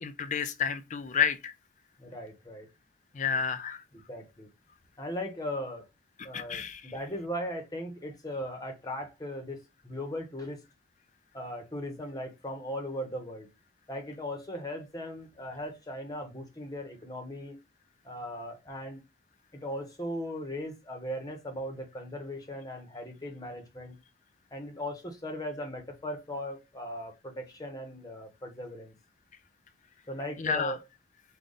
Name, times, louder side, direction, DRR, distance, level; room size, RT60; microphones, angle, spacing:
voice 1, 0.0-1.5 3.1-3.8 6.3-6.9 30.4-30.8, left 7 dB, 35° left, 0.4 m, -30 dB
voice 2, 2.0-2.7 4.1-4.5 5.0-5.9 6.2-9.6 9.8-10.6 11.3-13.5 13.9-17.6 18.0-19.0 19.6-24.0 24.5-28.9 30.1-30.8, equal, 20° left, 0.9 m, -38 dB
5.0 x 2.3 x 3.9 m
head